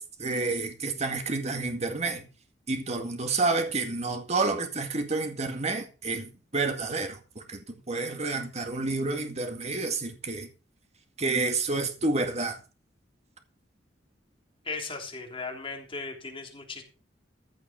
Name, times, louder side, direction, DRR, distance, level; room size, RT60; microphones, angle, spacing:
voice 1, 0.0-2.3 2.7-10.5 11.2-12.6, right 3 dB, 40° right, 2.0 m, -29 dB
voice 2, 14.6-16.8, left 4 dB, 30° left, 3.3 m, -37 dB
15.0 x 6.2 x 5.9 m
head